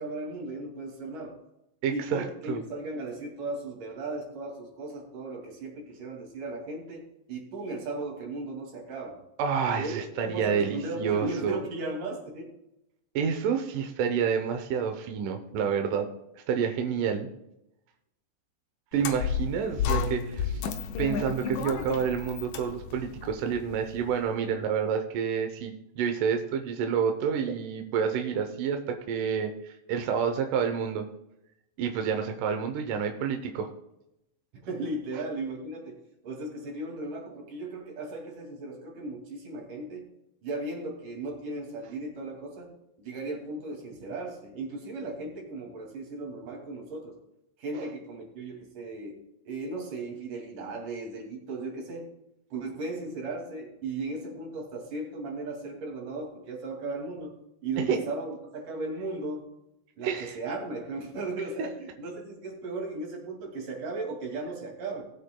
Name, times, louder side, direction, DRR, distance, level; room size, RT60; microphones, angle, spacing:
voice 1, 0.0-1.4 1.9-9.2 9.8-12.5 34.5-36.0 36.2-40.1 40.4-42.7 43.0-47.2 47.6-49.2 49.5-52.1 52.5-57.3 57.6-59.4 60.0-65.0, right 2 dB, 55° right, 1 dB, 3.6 m, -36 dB
voice 2, 1.8-2.6 9.4-11.6 13.2-16.1 16.5-17.3 18.9-20.6 21.0-31.1 31.8-33.7 47.7-47.9 57.9-58.0 60.0-60.4 61.6-61.7, right 7 dB, 75° right, 5 dB, 1.9 m, -29 dB
sound 1, 18.9-24.2, left 6 dB, 90° left, 1.7 m, -32 dB
19.5 x 8.3 x 2.2 m, 0.87 s
omnidirectional pair, 4.7 m